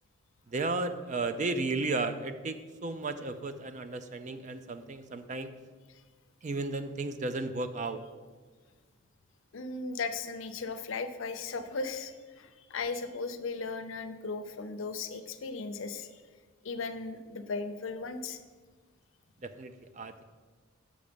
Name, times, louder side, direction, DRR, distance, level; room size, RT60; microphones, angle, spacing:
voice 1, 0.5-5.5 6.4-8.0 19.4-20.2, right 3 dB, 35° right, 10 dB, 0.4 m, -34 dB
voice 2, 9.5-16.1 16.6-18.4, left 4 dB, 65° left, 9 dB, 0.6 m, -37 dB
7.0 x 6.2 x 5.1 m, 1.4 s
head